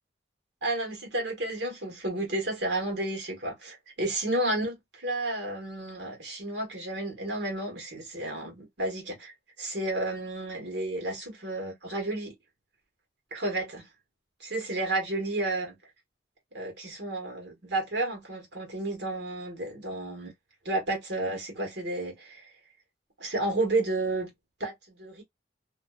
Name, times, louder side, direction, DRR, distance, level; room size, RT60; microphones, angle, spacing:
voice 1, 0.6-9.3 9.6-12.3 13.3-13.8 14.4-15.8 16.5-20.3 20.6-22.4 23.2-24.3 24.6-25.2, right 2 dB, 70° right, 1.2 m, -31 dB
2.5 x 2.2 x 2.3 m
head